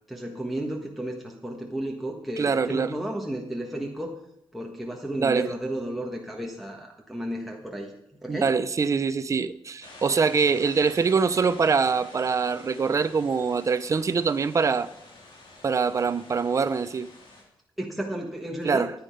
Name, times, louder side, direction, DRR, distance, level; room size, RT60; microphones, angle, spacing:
voice 1, 0.1-4.2 4.5-7.9 8.2-8.5 17.8-18.9, right 1 dB, ahead, 1.3 m, -33 dB
voice 2, 2.4-2.9 5.2-5.5 8.3-14.9 15.6-17.1 18.6-18.9, right 5 dB, 35° right, 0.6 m, -24 dB
sound 1, 9.8-17.4, left 2 dB, 60° left, 3.4 m, -48 dB
14.5 x 9.3 x 5.2 m
wide cardioid pair, 160°, 9 cm